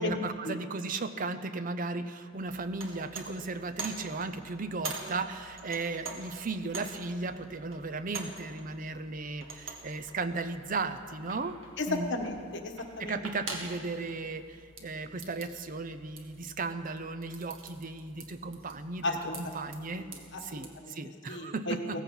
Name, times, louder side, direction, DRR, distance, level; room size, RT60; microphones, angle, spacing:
voice 1, 0.0-11.6 11.9-12.1 13.0-20.0 20.4-22.0, right 3 dB, 40° right, 11 dB, 0.6 m, -36 dB
sound 1, 2.3-20.8, right 3 dB, 75° right, 1.9 m, -46 dB
voice 2, 11.8-13.2 19.0-19.7 20.0-20.9 21.3-22.0, left 2 dB, 60° left, 4 dB, 1.5 m, -35 dB
16.5 x 15.0 x 5.6 m, 2.2 s
head